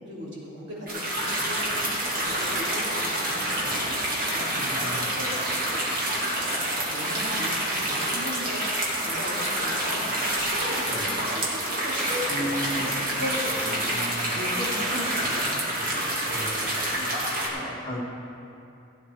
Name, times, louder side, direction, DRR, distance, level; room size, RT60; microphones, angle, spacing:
voice 1, 0.0-5.8 6.4-8.6 9.0-10.1 10.4-12.6 13.1-13.9 14.3-17.1, left 1 dB, 60° right, -6 dB, 3.2 m, -37 dB
sound 1, 0.9-17.5, right 1 dB, 45° right, 2.5 m, -27 dB
voice 2, 4.6-5.1 10.9-11.1 12.3-12.9 13.6-14.4 16.3-17.0 17.5-18.0, equal, 35° left, -3 dB, 1.8 m, -35 dB
16.5 x 9.4 x 4.6 m, 2.8 s
head